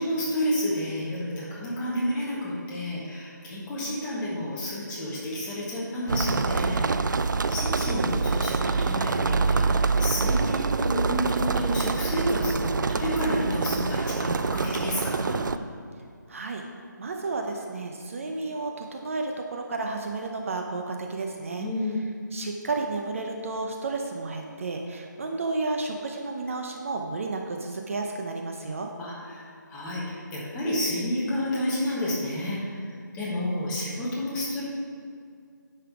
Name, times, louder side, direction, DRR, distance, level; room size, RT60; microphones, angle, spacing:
voice 1, 0.0-7.1 7.5-15.4 21.6-22.1 29.0-32.8 33.1-34.6, left 1 dB, 10° left, -7 dB, 1.4 m, -30 dB
sound 1, 6.1-15.6, right 4 dB, 70° right, 0.4 m, -26 dB
voice 2, 16.3-16.6 17.0-21.7 22.3-28.9, right 3 dB, 45° right, 2 dB, 0.7 m, -32 dB
9.7 x 5.7 x 4.7 m, 2.2 s
figure-of-eight pair, 165°, 10 cm